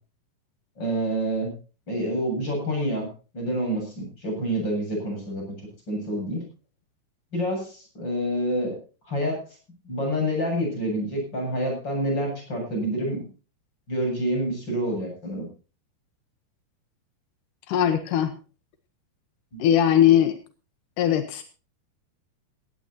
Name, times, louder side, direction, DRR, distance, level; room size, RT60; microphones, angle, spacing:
voice 1, 0.8-1.5 1.9-3.1 3.3-5.4 5.9-6.4 7.3-8.8 9.0-9.4 9.8-13.3 13.9-15.5 19.5-19.6, equal, 25° left, 2 dB, 8.0 m, -27 dB
voice 2, 17.7-18.3 19.6-20.4 21.0-21.4, left 10 dB, 75° left, 9 dB, 2.0 m, -20 dB
17.5 x 16.5 x 2.9 m, 0.34 s
omnidirectional pair, 5.1 m